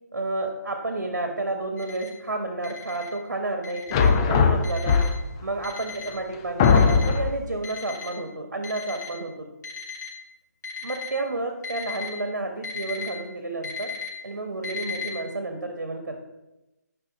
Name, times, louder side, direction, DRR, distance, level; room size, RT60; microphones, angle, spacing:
voice 1, 0.1-5.0 5.4-9.5 10.8-13.9 14.2-16.2, right 2 dB, 80° right, 4 dB, 1.5 m, -31 dB
Alarm, 1.8-2.1 2.6-3.1 3.6-4.1 4.6-5.1 5.6-6.1 6.6-7.1 7.6-8.1 8.6-9.1 9.6-10.1 10.6-11.1 11.6-12.1 12.6-13.1 13.6-14.1 14.6-15.1, left 5 dB, 85° left, 3.3 m, -36 dB
sound 1, 3.9-5.4 6.1-6.2 6.6-7.4, left 5 dB, 20° left, 0.5 m, -19 dB
12.5 x 5.6 x 4.1 m, 0.99 s
figure-of-eight pair, 160°, 9 cm